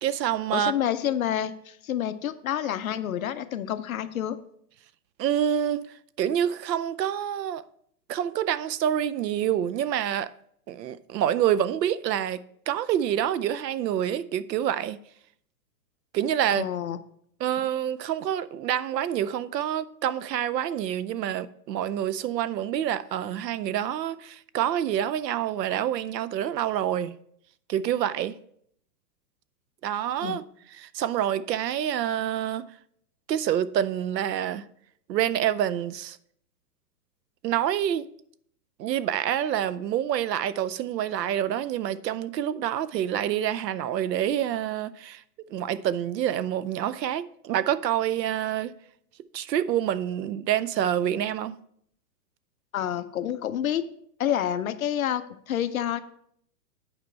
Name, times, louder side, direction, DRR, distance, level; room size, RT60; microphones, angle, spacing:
voice 1, 0.0-0.7 5.2-5.9 6.2-7.6 8.1-10.3 10.7-12.4 12.7-15.0 16.1-16.7 17.4-27.2 27.7-28.4 29.8-30.4 30.7-32.6 33.3-34.6 35.1-36.2 37.4-38.1 38.8-45.2 45.5-48.7 49.3-51.5, right 10 dB, 80° right, 0.7 m, -27 dB
voice 2, 0.5-4.4 16.5-17.0 30.2-30.4 52.7-53.8 54.2-56.0, left 10 dB, 55° left, 0.6 m, -28 dB
8.9 x 5.0 x 4.3 m
hypercardioid pair, 180°, 49 cm